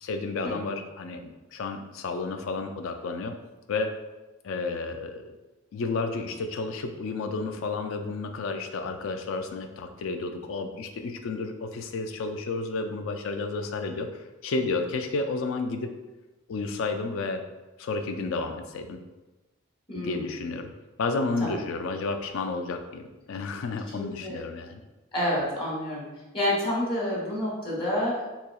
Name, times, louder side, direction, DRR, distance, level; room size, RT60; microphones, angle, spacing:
voice 1, 0.0-3.3 3.7-3.9 4.4-5.3 5.7-14.1 14.4-15.9 16.5-17.4 17.8-19.0 19.9-20.7 21.0-24.8, left 3 dB, 85° left, 6 dB, 0.4 m, -31 dB
voice 2, 19.9-20.5 21.4-21.6 23.9-24.4 25.1-26.0 26.3-28.3, left 1 dB, 25° left, -5 dB, 1.0 m, -29 dB
4.2 x 2.8 x 2.3 m, 1.1 s
head